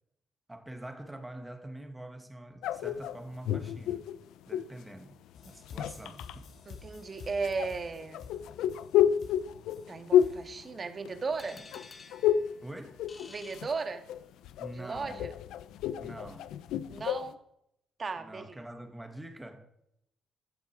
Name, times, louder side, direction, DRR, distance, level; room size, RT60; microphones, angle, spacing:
voice 1, 0.5-4.1 4.5-5.2 5.4-6.5 11.5-11.7 12.6-13.0 14.6-15.3 16.0-16.5 18.2-19.7, right 1 dB, 10° right, 2.4 m, -45 dB
sound 1, 2.6-4.8 5.5-6.3 7.4-11.4 11.7-12.6 12.9-13.8 14.1-17.3, left 10 dB, 85° left, 0.8 m, -30 dB
sound 2, 5.3-10.6, left 5 dB, 65° left, 3.5 m, -50 dB
voice 2, 6.7-8.2 9.9-11.6 13.3-14.0 14.7-15.3 16.9-17.4 18.0-18.6, right 4 dB, 40° right, 2.1 m, -36 dB
sound 3, 11.4-14.4, left 4 dB, 35° left, 2.3 m, -53 dB
16.5 x 12.0 x 5.1 m
cardioid pair, 90°, 0 cm